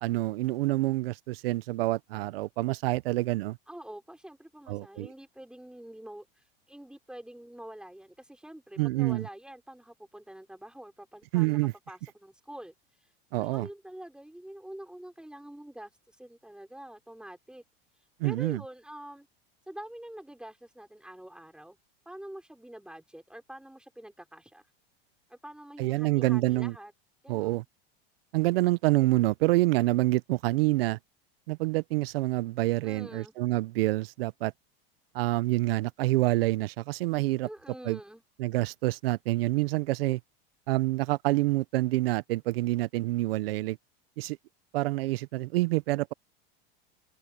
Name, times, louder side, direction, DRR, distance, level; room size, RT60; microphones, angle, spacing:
voice 1, 0.0-3.6 4.7-5.1 8.8-9.3 11.3-11.7 13.3-13.7 18.2-18.6 25.8-26.7 27.3-27.6 28.3-31.0 31.5-34.5 35.1-37.5 37.8-38.0 38.4-40.2 40.7-43.8 44.2-44.4 44.7-46.1, right 19 dB, 75° right, 0.8 m, -27 dB
voice 2, 3.7-12.7 13.4-17.6 18.2-19.3 19.7-21.8 22.1-24.6 25.3-26.9 27.2-27.6 32.8-33.4 37.4-38.2, right 1 dB, 5° right, 5.3 m, -46 dB
open air
supercardioid pair, 110°, 30 cm